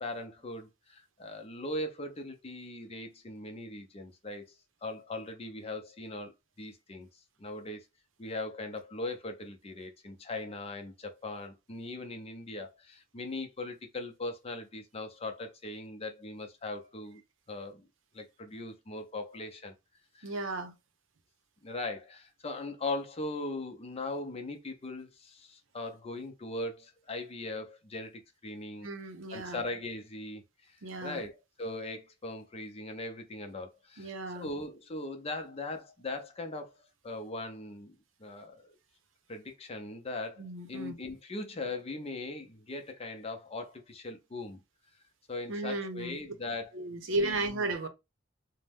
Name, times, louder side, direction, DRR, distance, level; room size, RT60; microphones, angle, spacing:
voice 1, 0.0-4.4 4.8-7.1 7.4-7.9 8.2-17.2 17.5-17.9 18.1-19.7 20.1-20.3 21.6-28.9 29.3-30.8 31.0-36.7 37.0-38.7 39.3-40.4 40.7-44.6 45.3-47.4, left 2 dB, 30° left, 0.6 m, -40 dB
voice 2, 20.2-20.7 28.8-29.6 30.8-31.3 34.0-34.5 40.4-40.9 45.5-46.2 46.7-47.9, right 2 dB, 85° right, 0.7 m, -34 dB
2.7 x 2.1 x 3.4 m
head